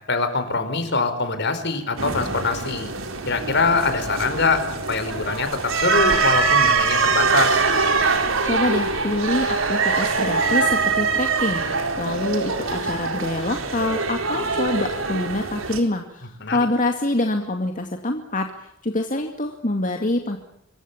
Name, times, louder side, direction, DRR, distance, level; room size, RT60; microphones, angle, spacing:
voice 1, 0.1-2.9 3.3-4.6 4.9-7.6 16.4-16.6, left 4 dB, 60° left, 9 dB, 5.2 m, -23 dB
sound 1, 2.0-15.8, right 4 dB, 85° right, 4.2 m, -23 dB
voice 2, 8.4-11.6 12.0-18.5 18.8-20.4, left 2 dB, 40° left, 4 dB, 2.3 m, -25 dB
27.0 x 24.0 x 7.3 m, 0.80 s
head